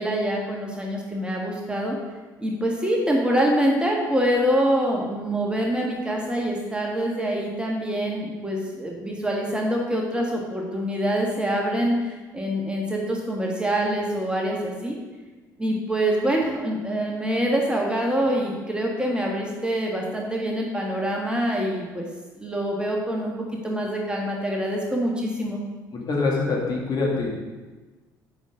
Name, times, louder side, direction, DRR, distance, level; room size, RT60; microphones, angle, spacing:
voice 1, 0.0-2.0 2.4-15.0 15.6-22.1 22.4-23.3 23.6-25.6, equal, 10° right, -2 dB, 1.7 m, -25 dB
voice 2, 25.9-27.3, left 3 dB, 40° left, -2 dB, 2.1 m, -24 dB
8.1 x 5.9 x 5.1 m, 1.3 s
figure-of-eight pair, 50°, 10 cm